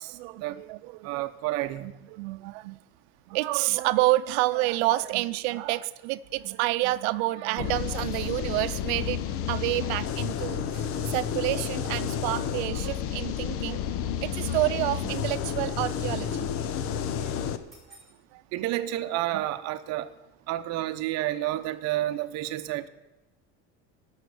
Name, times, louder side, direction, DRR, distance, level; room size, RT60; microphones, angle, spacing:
voice 1, 0.2-1.3 1.8-2.8 3.3-16.5 17.2-17.3 18.3-18.4 19.3-19.4, right 18 dB, 85° right, 0.7 m, -29 dB
voice 2, 1.0-1.9 18.5-20.1 20.5-22.9, right 14 dB, 55° right, 0.9 m, -30 dB
sound 1, 4.2-5.1 7.6-8.4 10.7-11.4 14.5-15.5 17.7-18.2, right 1 dB, ahead, 5.4 m, -58 dB
sound 2, 7.6-17.6, left 8 dB, 45° left, 0.9 m, -31 dB
13.0 x 6.5 x 9.2 m
cardioid pair, 160°, 31 cm